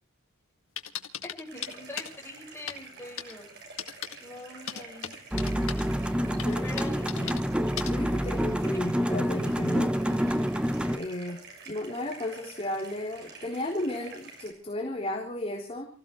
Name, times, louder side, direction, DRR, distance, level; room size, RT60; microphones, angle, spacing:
sound 1, 0.8-2.1 2.7-2.8 3.2-3.3 3.8-4.2 4.7-5.8 6.4-7.4 7.8-7.9, left 9 dB, 70° left, 2.1 m, -36 dB
voice 1, 1.2-3.5 4.2-5.2 6.6-7.3, left 2 dB, 10° left, 0 dB, 5.8 m, -43 dB
sound 2, 1.5-14.5, right 4 dB, 55° right, 7.0 m, -48 dB
sound 3, 5.3-11.0, equal, 5° right, 1.1 m, -27 dB
voice 2, 7.9-9.9 10.9-11.4 11.7-15.9, left 1 dB, 30° left, -2 dB, 3.8 m, -34 dB
29.0 x 15.5 x 3.2 m, 0.39 s
head